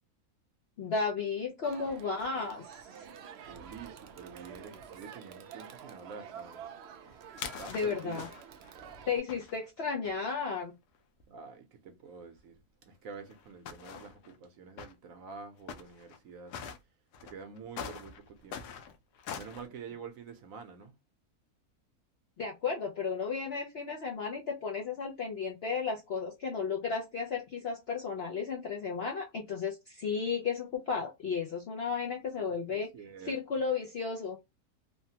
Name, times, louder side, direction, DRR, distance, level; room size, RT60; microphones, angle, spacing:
voice 1, 0.8-2.8 7.7-8.3 9.1-10.7 22.4-32.9 33.3-34.4, left 5 dB, 60° left, 0.6 m, -34 dB
Crowd, 1.6-9.2, right 7 dB, 80° right, 0.5 m, -49 dB
voice 2, 3.5-6.7 7.6-8.3 11.3-16.6 17.2-18.7 19.4-21.0 32.4-33.4, right 5 dB, 65° right, 1.0 m, -47 dB
sound 1, 7.1-8.7 9.3-10.2 10.9-11.0 11.2-11.3 12.4-12.5 13.1-14.4 14.8-14.9 15.7-16.2 16.5-16.8 17.1-19.7, left 7 dB, 90° left, 1.2 m, -43 dB
3.2 x 2.1 x 2.7 m
omnidirectional pair, 1.6 m